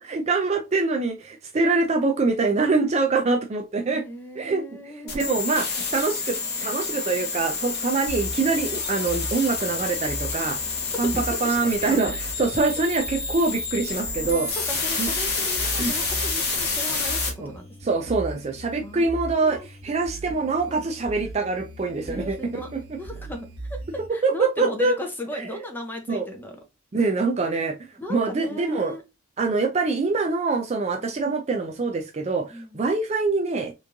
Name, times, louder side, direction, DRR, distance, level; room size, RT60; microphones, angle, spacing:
voice 1, 0.0-4.0 4.4-10.6 11.0-11.1 11.4-14.5 15.0-15.1 15.8-15.9 17.4-17.5 17.8-23.0 24.1-25.0 25.3-25.5 26.1-26.2 26.9-27.8 28.1-29.0 29.4-33.7, right 3 dB, 30° right, 5 dB, 0.4 m, -24 dB
voice 2, 3.9-5.3 10.9-12.1 14.2-17.7 18.8-19.1 19.4-19.7 20.7-20.8 22.0-22.7 23.0-23.4 23.7-23.8 24.1-26.6 28.0-29.0 31.0-31.1 32.5-32.8, left 1 dB, 10° left, 3 dB, 0.6 m, -36 dB
sound 1, 5.1-17.3, left 4 dB, 50° left, 1.2 m, -29 dB
sound 2, 8.1-24.1, right 1 dB, 80° right, 1.0 m, -39 dB
3.4 x 3.0 x 2.5 m, 0.25 s
head